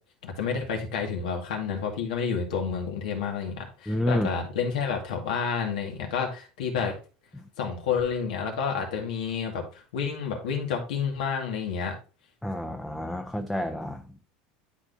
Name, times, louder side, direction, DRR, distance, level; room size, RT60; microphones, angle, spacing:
voice 1, 0.2-7.0 7.6-11.9, left 6 dB, 90° left, 1.8 m, -30 dB
voice 2, 3.9-4.3 12.4-14.0, left 1 dB, 5° left, 0.5 m, -29 dB
10.5 x 4.2 x 2.6 m
supercardioid pair, 120°, 4 cm